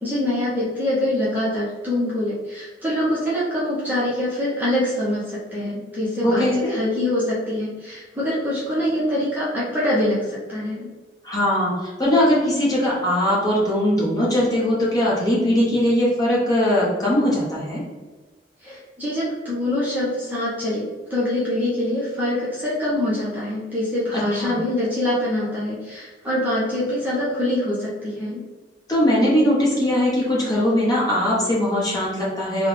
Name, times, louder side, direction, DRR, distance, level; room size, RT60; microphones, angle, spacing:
voice 1, 0.0-10.9 18.6-28.4, left 1 dB, 10° right, -8 dB, 0.8 m, -24 dB
voice 2, 6.2-6.7 11.2-17.8 24.1-24.6 28.9-32.7, left 1 dB, 20° left, -6 dB, 1.1 m, -20 dB
3.5 x 2.3 x 3.3 m, 1.3 s
head